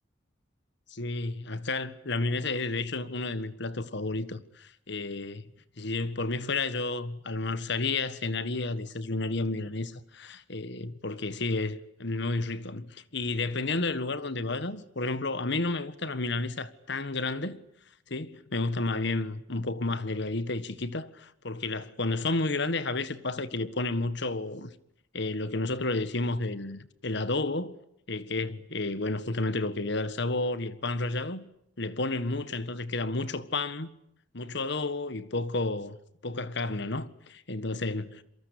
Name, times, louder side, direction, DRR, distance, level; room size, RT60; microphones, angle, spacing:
voice 1, 0.9-5.5 5.8-17.6 18.1-24.7 25.1-27.8 28.1-31.4 31.8-33.9 34.3-36.0 36.2-38.2, left 2 dB, 60° left, 1.6 m, -31 dB
27.5 x 23.5 x 8.4 m
head